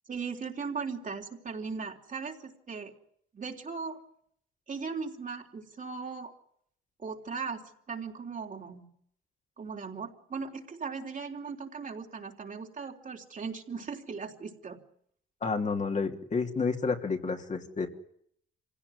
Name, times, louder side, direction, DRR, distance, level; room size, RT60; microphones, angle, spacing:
voice 1, 0.1-2.9 3.3-4.0 4.7-6.3 7.0-8.9 9.6-14.8, right 5 dB, 40° right, 2 dB, 3.8 m, -38 dB
voice 2, 15.4-17.9, left 4 dB, 35° left, 3 dB, 3.1 m, -30 dB
25.5 x 17.0 x 9.8 m, 0.69 s
cardioid pair, 90°, 20 cm